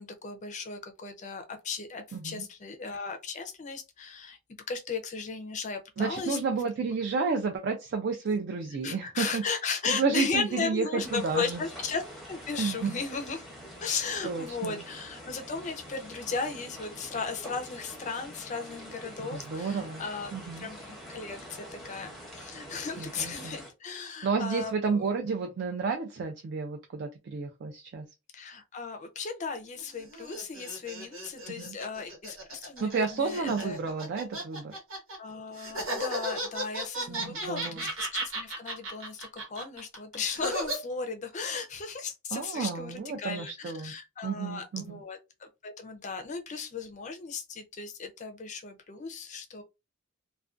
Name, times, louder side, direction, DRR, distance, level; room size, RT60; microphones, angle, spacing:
voice 1, 0.0-4.4 4.7-6.6 8.8-12.0 12.3-13.4 13.8-20.3 20.6-25.1 28.3-33.8 35.2-49.6, left 5 dB, 35° left, 0.4 m, -36 dB
voice 2, 2.1-2.4 6.0-9.4 9.9-11.6 12.6-13.0 14.2-14.8 19.3-20.0 20.3-20.7 23.0-23.6 24.2-28.1 31.5-31.7 32.8-34.8 37.1-37.9 42.3-43.9 44.2-45.0, right 4 dB, 55° right, 0.3 m, -31 dB
sound 1, 11.0-23.7, equal, ahead, 0.7 m, -46 dB
sound 2, 29.8-35.2 35.6-40.8, right 1 dB, 80° right, 1.1 m, -35 dB
2.4 x 2.1 x 2.4 m
head